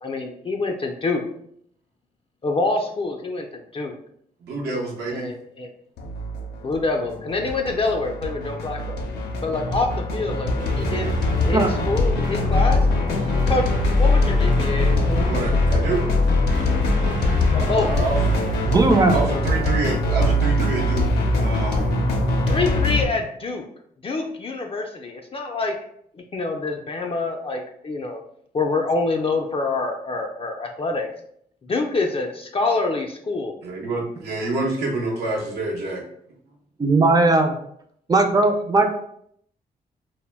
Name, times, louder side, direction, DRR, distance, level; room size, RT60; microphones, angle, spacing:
voice 1, 0.0-1.2 2.4-3.9 5.1-5.7 6.6-9.0 9.4-9.9 10.1-11.1 11.5-12.8 13.5-13.6 14.0-15.2 17.5-17.9 22.5-23.6 24.0-25.7 26.3-28.2 28.5-31.1 31.6-33.5, left 3 dB, 35° left, 2 dB, 0.4 m, -26 dB
voice 2, 4.4-5.3 15.3-16.0 17.8-18.3 19.0-21.1 21.4-21.9 33.6-36.0, right 2 dB, 80° right, -2 dB, 0.8 m, -27 dB
sound 1, 6.0-23.0, left 2 dB, 90° left, 0.5 m, -22 dB
sound 2, 10.6-19.4, right 1 dB, 50° right, 1.0 m, -30 dB
voice 3, 18.7-19.2 36.8-37.5 38.1-38.9, right 3 dB, 25° right, 5 dB, 0.5 m, -17 dB
2.1 x 2.1 x 3.3 m, 0.67 s
cardioid pair, 65°, 17 cm